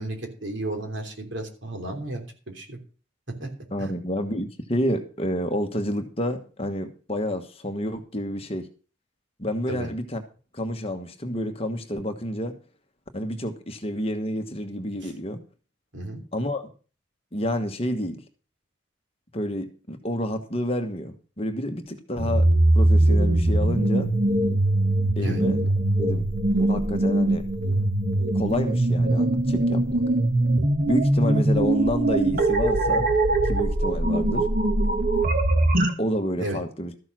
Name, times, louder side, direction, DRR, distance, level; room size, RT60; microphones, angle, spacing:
voice 1, 0.0-2.2 2.5-2.8 3.4-3.5 3.8-3.9 9.7-9.9 15.0-15.1 15.9-16.2 25.2-25.4 36.4-36.6, right 1 dB, 65° right, 3.2 m, -33 dB
voice 2, 3.7-8.7 9.4-10.2 10.5-12.6 13.1-15.4 16.3-16.7 17.3-18.2 19.3-22.5 22.7-24.1 25.2-25.7 26.0-26.3 26.6-27.5 28.3-30.0 30.9-33.1 33.4-34.5 36.0-36.9, equal, 30° left, 1.2 m, -29 dB
sound 1, 22.2-35.9, right 1 dB, 45° right, 1.4 m, -21 dB
13.5 x 6.7 x 6.1 m
head